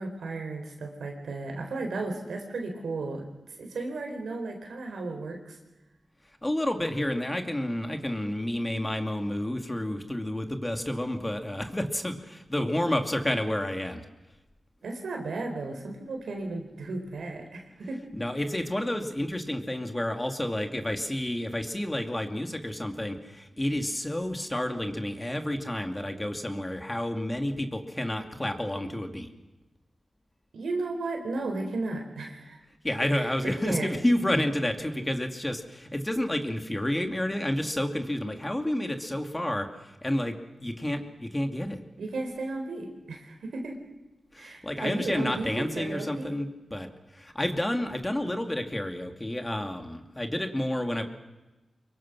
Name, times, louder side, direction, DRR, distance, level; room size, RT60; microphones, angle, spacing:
voice 1, 0.0-3.3 3.6-5.6 14.8-18.0 30.5-32.6 33.1-34.0 42.0-43.8 44.4-46.4, right 3 dB, 90° right, 3 dB, 4.2 m, -34 dB
voice 2, 6.4-14.0 18.1-29.3 32.8-40.4 40.6-41.8 44.3-51.0, left 1 dB, 20° left, 5 dB, 2.6 m, -30 dB
25.0 x 22.0 x 6.2 m, 1.1 s
cardioid pair, 55°, 0 cm